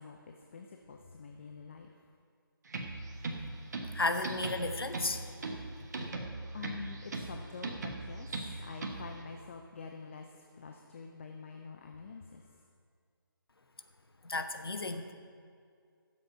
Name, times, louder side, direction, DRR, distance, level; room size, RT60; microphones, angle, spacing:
voice 1, 0.0-2.0 6.1-12.6, left 5 dB, 30° left, 4 dB, 0.6 m, -47 dB
sound 1, 2.7-9.2, right 2 dB, 45° right, 1.3 m, -40 dB
voice 2, 3.9-5.2 14.2-15.1, left 2 dB, 80° left, 7 dB, 1.0 m, -33 dB
12.5 x 7.5 x 5.6 m, 2.3 s
figure-of-eight pair, 160°, 12 cm